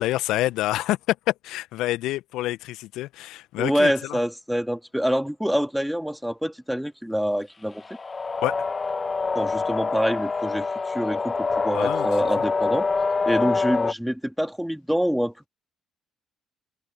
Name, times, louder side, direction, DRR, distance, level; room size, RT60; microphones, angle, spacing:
voice 1, 0.0-4.2 8.4-8.6 11.7-12.3, left 16 dB, 65° left, 1.6 m, -27 dB
voice 2, 3.6-7.8 9.4-12.9 13.3-15.5, equal, ahead, 3.7 m, -26 dB
sound 1, 7.8-13.9, left 4 dB, 30° left, 1.2 m, -25 dB
figure-of-eight pair, 50°, 0 cm